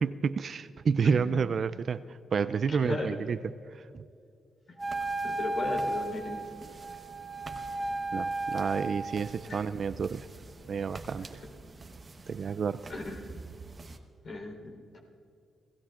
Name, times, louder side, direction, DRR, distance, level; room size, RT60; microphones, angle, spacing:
voice 1, 0.0-3.4 3.7-4.0 8.1-10.3 10.7-11.4 12.3-12.9, right 6 dB, 55° right, 15 dB, 0.4 m, -30 dB
voice 2, 1.0-1.4 2.7-3.2 5.2-6.5 9.4-9.6 11.4-11.5 12.9-13.3 14.2-15.0, left 2 dB, 55° left, 1 dB, 3.9 m, -37 dB
Wind instrument woodwind instrument, 4.8-9.3, right 2 dB, 20° right, 1.4 m, -34 dB
sound 1, 4.8-14.0, right 3 dB, 35° right, 1.1 m, -48 dB
29.5 x 16.0 x 2.5 m, 2.5 s
cardioid pair, 70°, 0 cm